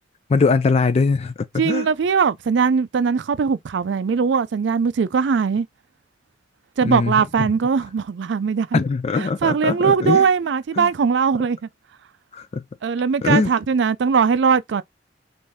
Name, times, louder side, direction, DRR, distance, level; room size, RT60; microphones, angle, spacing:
voice 1, 0.3-1.9 6.8-7.5 8.7-10.3 10.8-10.9 12.3-12.6 13.2-13.5, left 4 dB, 35° left, 0.3 m, -21 dB
voice 2, 1.6-5.7 6.8-8.8 9.2-11.7 12.8-14.8, right 6 dB, 70° right, 0.4 m, -20 dB
5.4 x 2.6 x 3.4 m
head